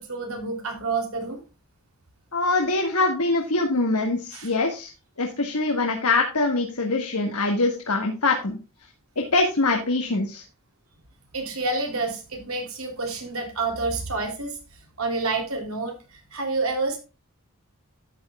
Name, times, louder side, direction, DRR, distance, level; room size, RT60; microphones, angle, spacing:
voice 1, 0.0-1.4 4.3-4.5 11.3-14.6 15.0-17.0, right 3 dB, 75° right, 3 dB, 3.4 m, -28 dB
voice 2, 2.3-4.9 5.2-8.6 9.2-10.4, left 3 dB, 90° left, 2 dB, 1.9 m, -23 dB
13.0 x 9.3 x 2.4 m, 0.29 s
head